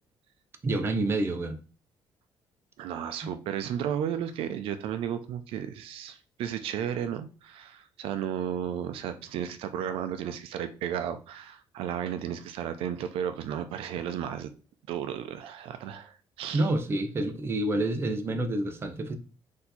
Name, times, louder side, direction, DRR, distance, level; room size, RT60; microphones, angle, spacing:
voice 1, 0.6-1.6 3.2-3.3 16.5-19.2, right 2 dB, 25° right, 0.6 m, -28 dB
voice 2, 2.8-14.5 14.9-16.7, right 9 dB, 80° right, 0.4 m, -33 dB
4.4 x 2.7 x 4.1 m
cardioid pair, 145°, 9 cm